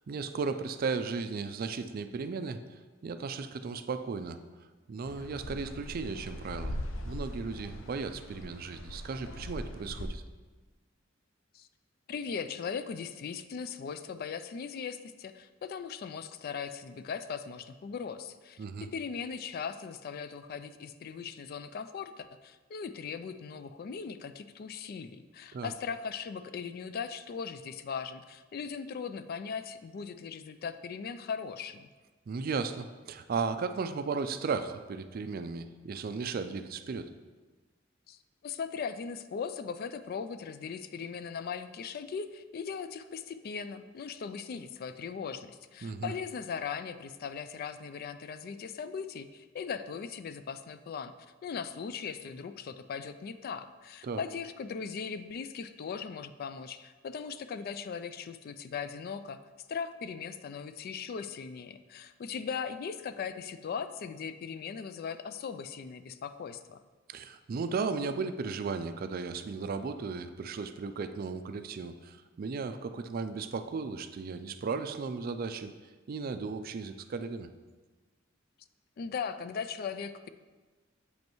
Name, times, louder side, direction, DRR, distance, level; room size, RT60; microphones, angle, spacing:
voice 1, 0.0-2.6 3.0-4.4 4.9-6.8 7.0-10.2 18.6-18.9 25.5-25.7 32.3-37.1 45.8-46.1 54.0-54.2 67.1-75.7 76.1-77.5, right 4 dB, 50° right, 10 dB, 0.4 m, -35 dB
sound 1, 5.0-10.1, left 1 dB, 85° left, 0.6 m, -41 dB
voice 2, 12.1-18.6 18.9-31.9 38.1-51.1 51.4-59.4 59.7-66.8 79.0-80.3, left 6 dB, 50° left, 11 dB, 0.3 m, -39 dB
8.0 x 5.3 x 3.0 m, 1.3 s
head